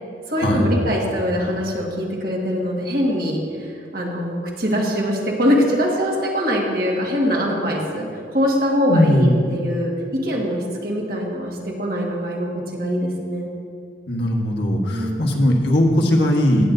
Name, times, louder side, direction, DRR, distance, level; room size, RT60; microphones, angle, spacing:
voice 1, 0.3-13.5 14.9-15.3, equal, 55° right, -2 dB, 1.7 m, -23 dB
voice 2, 8.9-9.4 14.1-16.6, left 1 dB, 80° left, 0 dB, 1.4 m, -18 dB
17.0 x 7.9 x 2.6 m, 2.2 s
head